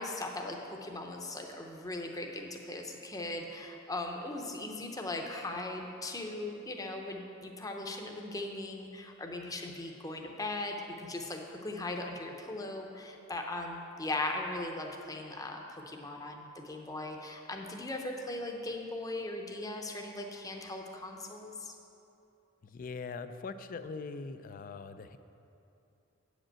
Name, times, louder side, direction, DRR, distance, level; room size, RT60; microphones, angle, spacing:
voice 1, 0.0-21.7, left 2 dB, 15° left, 2 dB, 0.7 m, -39 dB
voice 2, 22.6-25.2, left 4 dB, 40° left, 11 dB, 0.4 m, -41 dB
8.5 x 5.1 x 7.5 m, 2.8 s
head